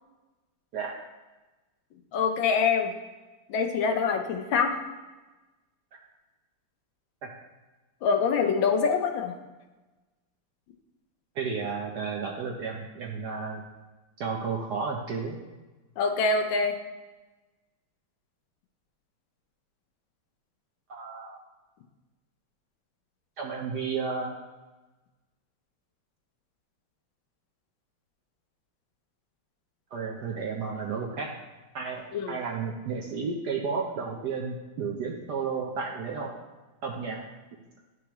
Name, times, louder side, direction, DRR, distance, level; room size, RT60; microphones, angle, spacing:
voice 1, 2.1-2.9 3.5-4.8 8.0-9.3 16.0-16.8 32.1-32.3, left 5 dB, 70° left, 4 dB, 1.3 m, -25 dB
voice 2, 11.3-13.6 14.2-15.4 20.9-21.4 23.4-24.4 29.9-31.3 31.7-36.4 36.8-37.2, right 5 dB, 65° right, -1 dB, 1.0 m, -32 dB
11.5 x 4.6 x 3.0 m, 1.2 s
omnidirectional pair, 2.4 m